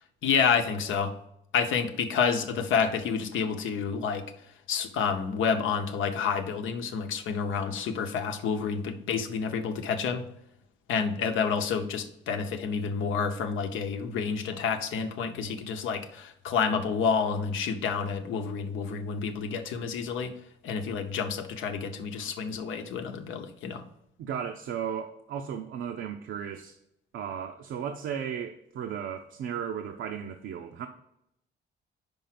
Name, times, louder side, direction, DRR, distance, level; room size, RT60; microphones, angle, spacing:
voice 1, 0.2-1.1 1.5-4.3 4.7-10.3 10.9-20.3 20.6-23.8, left 6 dB, 80° left, 0.8 m, -29 dB
voice 2, 24.2-26.8 27.1-30.9, right 8 dB, 75° right, 0.6 m, -35 dB
5.4 x 4.6 x 5.8 m
cardioid pair, 90°, 20 cm